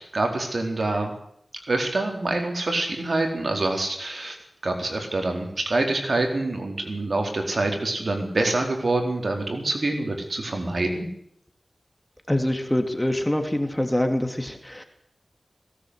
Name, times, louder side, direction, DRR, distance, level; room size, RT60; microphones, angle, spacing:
voice 1, 0.1-1.1 1.7-4.4 4.6-11.1, right 2 dB, 65° right, 4 dB, 4.2 m, -26 dB
voice 2, 12.3-14.8, left 1 dB, 10° left, 6 dB, 2.8 m, -25 dB
18.0 x 17.5 x 8.3 m, 0.73 s
wide cardioid pair, 60°, 0 cm